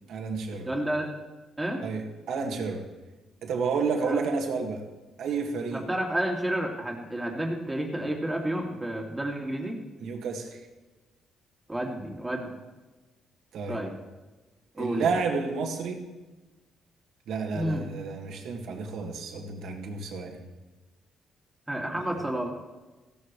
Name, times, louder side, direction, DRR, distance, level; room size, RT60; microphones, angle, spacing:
voice 1, 0.1-0.7 1.8-2.0 2.3-2.9 3.4-4.8 5.2-5.9 10.0-10.6 13.5-13.8 14.8-16.0 17.3-20.4 22.0-22.2, right 4 dB, 75° right, 2 dB, 1.9 m, -30 dB
voice 2, 0.6-1.1 1.6-1.9 4.0-4.2 5.7-9.8 11.7-12.5 13.7-13.9 14.8-15.1 17.5-17.8 21.7-22.5, right 1 dB, 10° right, 0 dB, 2.6 m, -30 dB
16.0 x 14.0 x 3.2 m, 1.2 s
cardioid pair, 90°, 0 cm